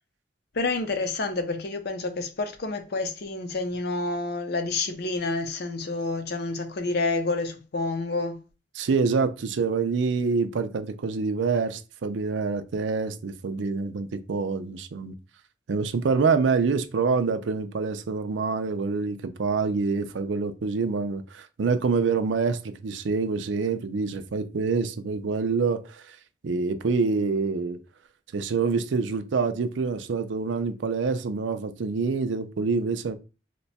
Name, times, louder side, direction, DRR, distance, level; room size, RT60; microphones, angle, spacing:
voice 1, 0.6-8.4, left 3 dB, 60° left, 0.6 m, -29 dB
voice 2, 8.7-15.1 15.7-26.2 26.4-27.8 28.3-33.1, right 4 dB, 75° right, 0.5 m, -26 dB
2.9 x 2.2 x 4.1 m
head